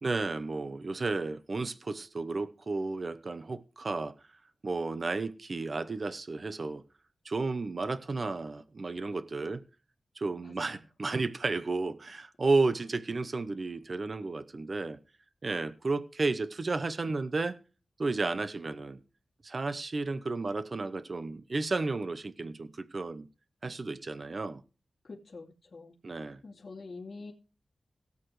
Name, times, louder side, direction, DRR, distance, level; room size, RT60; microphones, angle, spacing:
voice 1, 0.0-4.1 4.6-6.8 7.2-9.6 10.2-15.0 15.4-17.6 18.0-19.0 19.4-23.2 23.6-24.6 26.0-26.4, right 3 dB, 50° right, 0.9 m, -32 dB
voice 2, 10.4-10.8 25.0-25.9 26.4-27.3, left 3 dB, 50° left, 2.7 m, -46 dB
18.0 x 8.4 x 3.3 m
wide cardioid pair, 75°, 0 cm